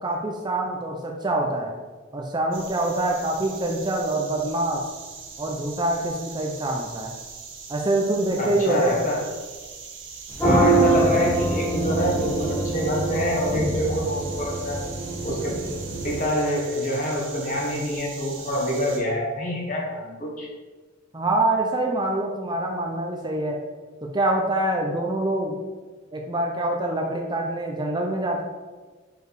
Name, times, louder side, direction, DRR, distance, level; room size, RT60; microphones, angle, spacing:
voice 1, 0.0-1.7 2.1-4.8 5.4-7.1 7.7-9.0 21.1-23.7 24.0-25.6 26.1-28.4, right 1 dB, 20° right, 1 dB, 0.6 m, -25 dB
sound 1, 2.5-19.0, right 5 dB, 70° right, 1.1 m, -41 dB
voice 2, 8.4-9.2 10.4-14.8 15.2-15.6 16.0-20.5, equal, 40° left, -2 dB, 1.6 m, -26 dB
sound 2, 10.3-16.2, right 2 dB, 10° left, 1.4 m, -24 dB
4.9 x 4.8 x 4.7 m, 1.3 s
head